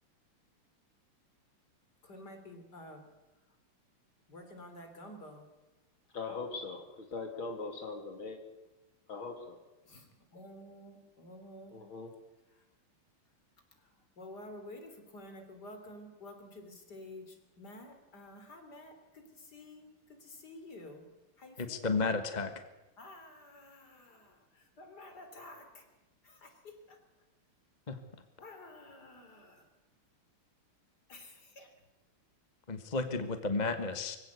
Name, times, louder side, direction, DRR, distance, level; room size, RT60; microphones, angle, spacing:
voice 1, 2.0-3.1 4.3-5.5 9.8-11.8 12.5-12.6 13.7-21.1 21.4-21.9 23.0-25.9 26.2-27.0 28.4-29.7 31.1-31.7, left 1 dB, 45° left, 6 dB, 3.9 m, -51 dB
voice 2, 6.1-6.8 7.1-8.4 9.1-9.6 11.7-12.1, left 4 dB, 65° left, 4 dB, 3.6 m, -40 dB
voice 3, 21.6-22.5 27.9-28.0 32.7-34.2, left 3 dB, 25° left, 8 dB, 1.2 m, -32 dB
24.0 x 16.5 x 8.3 m, 1.0 s
omnidirectional pair, 2.4 m